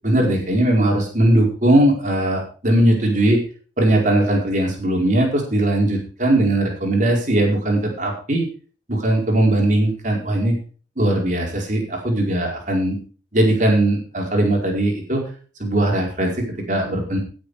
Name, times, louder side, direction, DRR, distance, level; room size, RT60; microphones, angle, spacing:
voice 1, 0.0-3.4 3.8-8.5 8.9-10.5 11.0-13.0 13.3-15.2 15.6-17.2, right 1 dB, 45° right, 0 dB, 4.8 m, -19 dB
17.0 x 7.9 x 5.0 m, 0.39 s
head